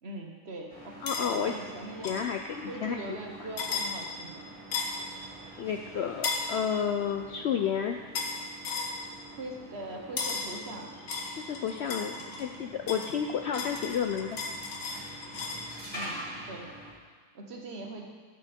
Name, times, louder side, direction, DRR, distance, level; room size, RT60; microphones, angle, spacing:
voice 1, 0.0-2.2 2.7-4.5 9.3-10.9 12.1-12.3 15.9-16.7 17.3-18.1, right 2 dB, 45° right, 1 dB, 1.3 m, -41 dB
sound 1, 0.7-16.9, right 1 dB, 5° left, 2.5 m, -46 dB
voice 2, 1.0-1.5 2.0-3.0 5.6-8.0 11.4-14.4, left 7 dB, 90° left, 4 dB, 0.5 m, -31 dB
sound 2, 1.1-1.3 2.0-2.3 3.6-3.9 4.7-5.0 6.2-6.5 8.1-8.4 8.6-8.9 10.2-10.5 11.1-12.5 12.9-15.7, left 4 dB, 70° left, 1.6 m, -34 dB
13.0 x 6.7 x 4.3 m, 1.5 s
omnidirectional pair, 1.7 m